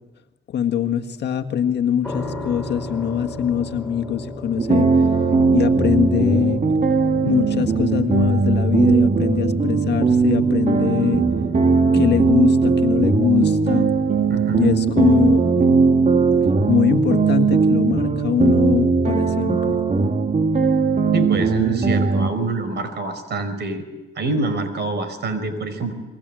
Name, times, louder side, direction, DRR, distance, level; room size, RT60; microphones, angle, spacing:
voice 1, 0.5-4.9 5.5-6.6 7.2-11.3 11.9-13.9 14.5-15.4 16.7-19.8, left 8 dB, 60° left, 6 dB, 1.7 m, -22 dB
sound 1, 2.0-16.9, left 1 dB, 5° left, 7.0 m, -38 dB
sound 2, 4.6-22.3, right 4 dB, 40° right, 2.2 m, -18 dB
voice 2, 14.3-14.7 21.1-23.8 24.2-25.9, right 2 dB, 60° right, 11 dB, 4.8 m, -26 dB
28.5 x 22.0 x 7.7 m, 1.1 s
cardioid pair, 90°, 20 cm